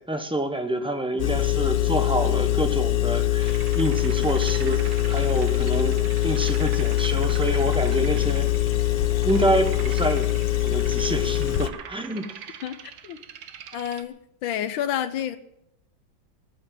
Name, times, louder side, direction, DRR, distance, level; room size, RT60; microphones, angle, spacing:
voice 1, 0.0-8.5 9.2-10.3 10.6-12.2, right 1 dB, 5° right, 6 dB, 0.6 m, -27 dB
Engine, 1.2-11.7, left 14 dB, 70° left, 1.4 m, -23 dB
sound 1, 3.4-14.0, right 8 dB, 80° right, 1.7 m, -43 dB
voice 2, 13.7-14.1 14.4-15.4, left 10 dB, 85° left, 10 dB, 1.6 m, -28 dB
18.5 x 7.7 x 7.5 m, 0.80 s
omnidirectional pair, 2.1 m